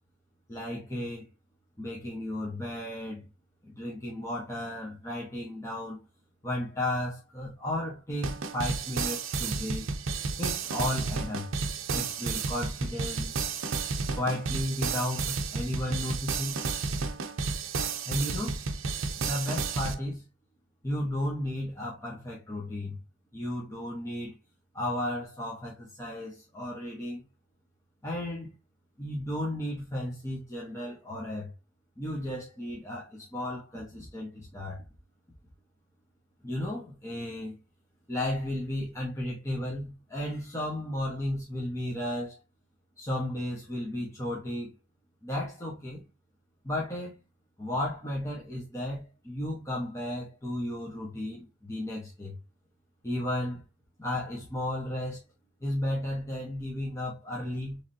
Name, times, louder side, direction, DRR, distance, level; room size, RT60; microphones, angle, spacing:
voice 1, 0.5-1.3 1.8-3.2 3.6-6.0 6.4-9.8 10.4-11.5 11.9-13.5 14.1-16.6 18.1-18.6 19.2-20.2 20.8-23.0 23.3-24.4 24.7-27.2 28.0-28.5 29.0-31.5 32.0-34.8 36.4-37.5 38.1-42.4 43.0-44.7 45.2-46.0 46.6-47.1 47.6-52.4 53.0-53.6 54.0-55.2 55.6-57.8, left 1 dB, 15° left, 1.2 m, -34 dB
sound 1, 8.2-19.9, right 4 dB, 75° right, 0.6 m, -32 dB
4.7 x 3.4 x 2.7 m
head